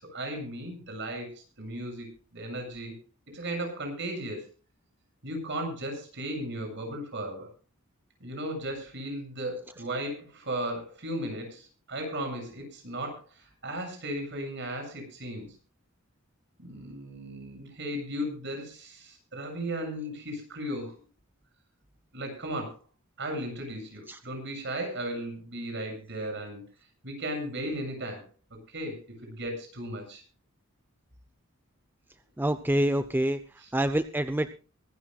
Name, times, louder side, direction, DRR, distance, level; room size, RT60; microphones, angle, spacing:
voice 1, 0.0-2.9 3.3-4.5 5.2-7.5 8.2-15.5 16.6-21.0 22.1-22.8 23.2-26.6 27.0-28.2 28.7-30.2 33.6-33.7, right 1 dB, 55° right, 4 dB, 7.3 m, -36 dB
voice 2, 32.4-33.4 33.7-34.5, right 1 dB, 10° right, 10 dB, 0.6 m, -26 dB
24.0 x 13.5 x 2.4 m, 0.35 s
head